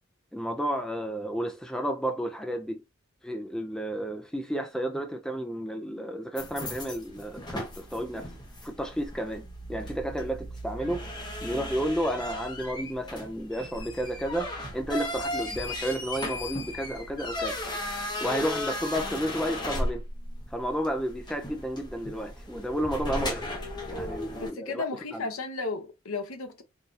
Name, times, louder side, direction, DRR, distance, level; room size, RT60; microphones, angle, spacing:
voice 1, 0.3-2.8 3.2-8.3 8.6-11.1 11.4-17.6 18.2-20.0 20.5-23.4 23.9-24.8 25.1-25.2, equal, 5° left, 0.4 m, -32 dB
sound 1, 6.4-24.5, left 1 dB, 20° left, 0.9 m, -36 dB
voice 2, 24.4-26.6, left 3 dB, 85° left, 0.8 m, -34 dB
4.0 x 2.7 x 2.4 m
head